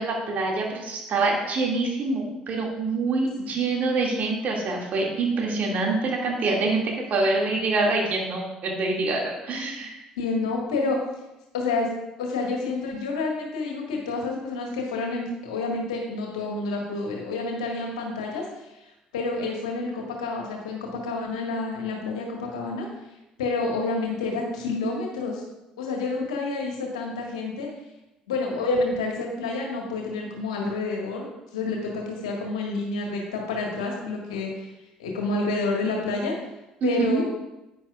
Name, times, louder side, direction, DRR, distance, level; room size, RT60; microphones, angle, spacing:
voice 1, 0.0-10.0 36.8-37.2, right 3 dB, 50° right, -1 dB, 2.2 m, -25 dB
voice 2, 10.2-11.0 11.5-11.9 12.2-18.4 18.8-18.9 19.1-22.9 23.4-25.4 25.8-27.7 28.3-31.3 31.5-34.7 35.0-36.3 36.8-37.2, left 3 dB, 75° left, 0 dB, 1.6 m, -28 dB
10.5 x 9.1 x 2.4 m, 0.98 s
figure-of-eight pair, 55°, 3 cm